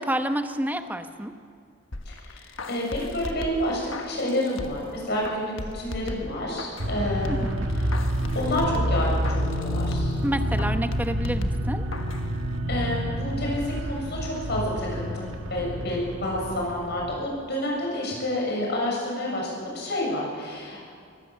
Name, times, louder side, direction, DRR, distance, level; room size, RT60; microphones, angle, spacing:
voice 1, 0.0-1.3 7.3-7.7 10.2-11.8, right 1 dB, 10° right, 7 dB, 1.0 m, -29 dB
sound 1, 1.9-4.9 5.2-6.9 7.2-10.2 10.6-12.3 12.6-12.7, left 2 dB, 80° left, 1.4 m, -37 dB
voice 2, 2.1-7.4 7.9-8.0 8.3-10.2 12.7-20.9, left 1 dB, 60° left, -2 dB, 7.1 m, -29 dB
sound 2, 6.8-17.2, equal, 80° right, 1.9 m, -28 dB
24.0 x 14.5 x 7.6 m, 2.2 s
head